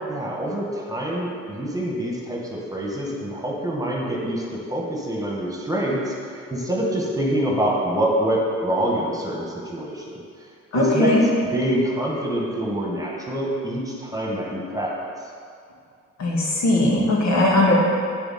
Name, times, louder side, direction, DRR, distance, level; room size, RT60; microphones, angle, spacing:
voice 1, 0.1-10.1 10.7-14.9, right 1 dB, 10° right, -3 dB, 1.5 m, -25 dB
voice 2, 10.7-11.2 16.2-17.7, left 1 dB, 65° left, -3 dB, 2.0 m, -19 dB
8.2 x 6.9 x 4.3 m, 2.3 s
cardioid pair, 90°, 30 cm